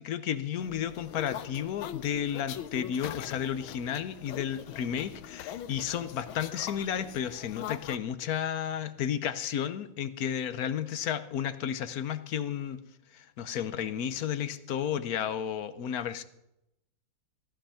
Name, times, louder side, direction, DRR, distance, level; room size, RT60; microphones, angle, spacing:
voice 1, 0.0-12.8 13.1-16.2, left 9 dB, 60° left, 12 dB, 1.1 m, -32 dB
sound 1, 0.6-8.0, left 11 dB, 80° left, 1.5 m, -42 dB
15.5 x 11.5 x 5.7 m, 0.85 s
omnidirectional pair, 2.2 m